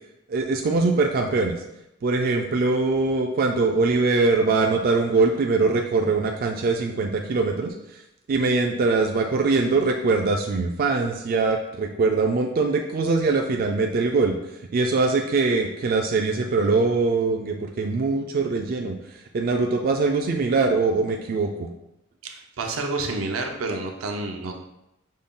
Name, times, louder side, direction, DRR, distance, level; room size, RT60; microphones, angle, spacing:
voice 1, 0.3-1.6 2.0-8.0 8.3-14.4 14.7-21.7, right 3 dB, 45° right, 3 dB, 0.3 m, -22 dB
voice 2, 22.2-24.5, right 3 dB, 85° right, 3 dB, 0.6 m, -29 dB
5.1 x 2.3 x 3.6 m, 0.87 s
head